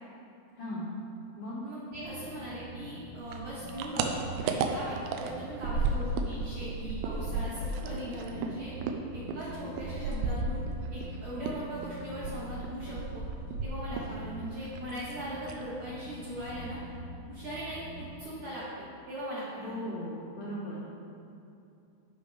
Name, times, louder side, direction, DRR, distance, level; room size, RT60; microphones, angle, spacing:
voice 1, 0.6-0.9 1.4-1.6 19.6-20.9, left 1 dB, 75° left, -7 dB, 1.9 m, -37 dB
voice 2, 1.6-4.1 4.4-8.7 9.1-10.6 10.9-13.2 13.6-16.8 17.3-19.8, right 1 dB, 65° right, -9 dB, 1.8 m, -39 dB
double proc phone, 1.9-18.2, right 1 dB, 45° left, 1.0 m, -46 dB
sound 1, 3.3-6.4 6.6-11.1 11.4-14.2 14.4-15.1 15.4-15.7 16.0-16.1 16.4-17.0, right 4 dB, 85° right, 2.6 m, -33 dB
13.0 x 5.3 x 3.4 m, 2.6 s
omnidirectional pair, 4.9 m